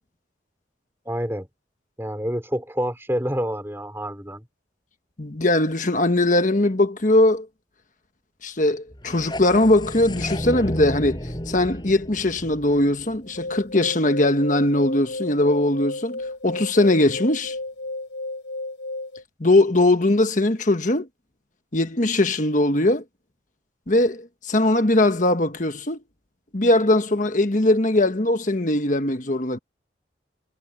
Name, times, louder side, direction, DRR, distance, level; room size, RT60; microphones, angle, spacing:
voice 1, 1.0-1.5 2.0-4.4, equal, 15° right, 3.3 m, -27 dB
voice 2, 5.2-7.5 8.4-11.2 11.5-17.5 19.4-21.1 21.7-23.0 23.9-26.0 26.5-29.6, left 1 dB, 40° left, 1.4 m, -20 dB
sound 1, 8.9-13.8, equal, 25° left, 6.6 m, -33 dB
sound 2, 13.2-19.2, left 2 dB, 75° left, 5.0 m, -33 dB
head